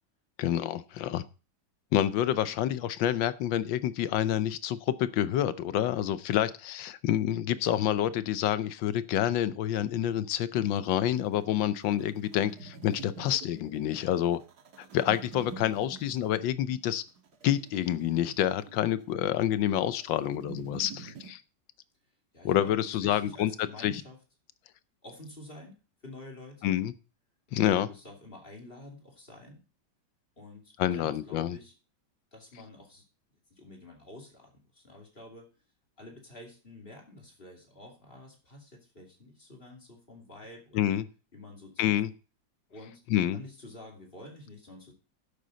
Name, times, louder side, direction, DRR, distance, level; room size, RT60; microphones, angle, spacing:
voice 1, 0.4-1.2 1.9-14.4 14.9-17.0 17.4-21.4 22.4-23.5 23.8-24.0 26.6-26.9 27.5-27.9 30.8-31.6 40.7-41.0 41.8-42.1 43.1-43.4, left 11 dB, 90° left, 14 dB, 1.5 m, -28 dB
sound 1, 10.7-21.3, right 5 dB, 60° right, 1.8 m, -48 dB
voice 2, 22.3-24.2 25.0-25.8 26.0-26.8 27.5-29.6 30.4-31.7 32.3-33.0 33.5-35.5 36.0-40.9 41.3-42.0 42.7-43.0 43.3-44.9, left 1 dB, 30° left, 0 dB, 2.7 m, -49 dB
11.0 x 8.4 x 3.9 m, 0.35 s
omnidirectional pair, 2.0 m